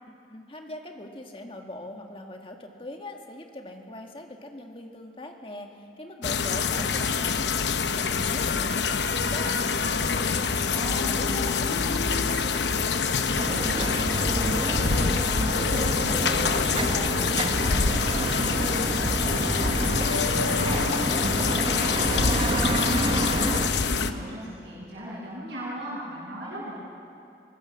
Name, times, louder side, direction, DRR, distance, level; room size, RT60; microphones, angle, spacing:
voice 1, 0.0-17.2, left 1 dB, 30° left, 3 dB, 1.7 m, -42 dB
sound 1, 6.2-24.1, left 5 dB, 85° left, 0.9 m, -26 dB
voice 2, 10.7-12.0 18.2-22.1 22.5-26.7, equal, 70° right, -10 dB, 7.7 m, -37 dB
sound 2, 13.4-23.7, right 1 dB, 30° right, 0.8 m, -29 dB
24.0 x 19.0 x 7.2 m, 2.5 s
head